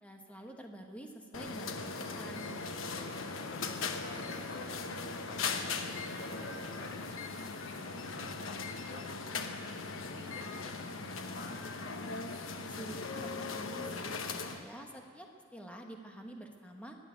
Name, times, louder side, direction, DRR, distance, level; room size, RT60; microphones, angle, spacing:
voice 1, 0.0-2.5 12.4-14.2 14.5-17.0, right 1 dB, 5° left, 2 dB, 1.3 m, -48 dB
sound 1, 1.3-14.6, left 4 dB, 80° left, 1.1 m, -39 dB
voice 2, 3.5-5.8 6.2-11.7, left 2 dB, 60° left, 1 dB, 2.0 m, -50 dB
21.0 x 7.5 x 9.1 m, 2.1 s
head